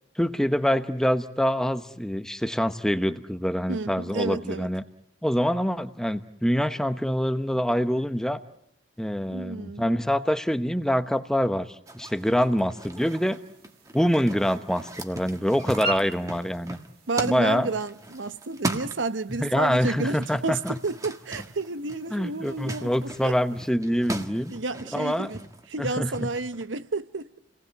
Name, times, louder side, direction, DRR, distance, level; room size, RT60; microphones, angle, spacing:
voice 1, 0.2-4.8 5.2-8.4 9.0-11.7 11.9-13.4 13.9-16.8 17.2-17.7 19.4-20.8 22.1-24.5 24.9-25.3 25.8-26.3, equal, 5° left, 1.0 m, -25 dB
voice 2, 3.7-4.7 9.3-9.9 17.1-23.3 24.5-25.4 25.7-27.4, right 3 dB, 80° right, 1.0 m, -31 dB
sound 1, 11.9-19.6 19.8-26.7, right 2 dB, 20° right, 1.6 m, -38 dB
sound 2, 13.0-23.7, right 2 dB, 55° right, 3.0 m, -42 dB
29.5 x 19.5 x 9.5 m
head